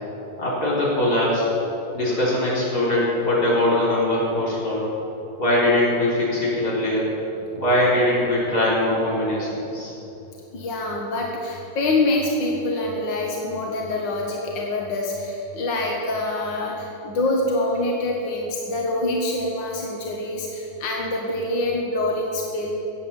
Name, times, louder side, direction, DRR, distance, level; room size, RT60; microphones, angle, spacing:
voice 1, 0.4-1.5 1.9-4.8 5.4-7.0 7.5-9.9, left 1 dB, 25° left, -7 dB, 4.2 m, -21 dB
voice 2, 10.5-22.7, left 2 dB, 60° left, -1 dB, 1.2 m, -25 dB
15.5 x 8.6 x 7.2 m, 3.0 s
omnidirectional pair, 4.0 m